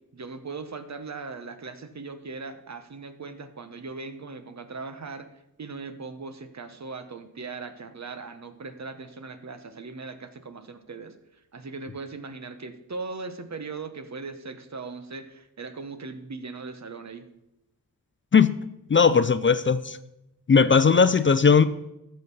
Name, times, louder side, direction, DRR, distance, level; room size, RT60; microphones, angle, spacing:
voice 1, 0.1-5.3 5.6-11.1 11.5-17.2, right 4 dB, 50° right, 10 dB, 1.1 m, -39 dB
voice 2, 18.9-20.0 20.5-21.7, left 5 dB, 35° left, 13 dB, 0.5 m, -18 dB
13.5 x 6.6 x 5.5 m, 0.87 s
wide cardioid pair, 95°, 35 cm